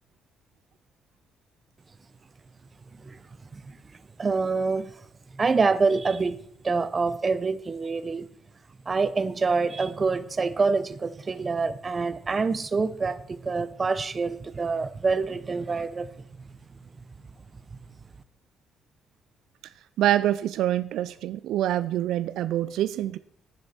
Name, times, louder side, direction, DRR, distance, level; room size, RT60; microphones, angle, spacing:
voice 1, 4.2-4.9 5.4-6.4 6.6-8.3 8.9-16.1, right 4 dB, 35° right, 0.8 m, -26 dB
voice 2, 19.6-23.2, right 12 dB, 85° right, 0.4 m, -26 dB
11.0 x 10.0 x 4.3 m
cardioid pair, 90°, 0 cm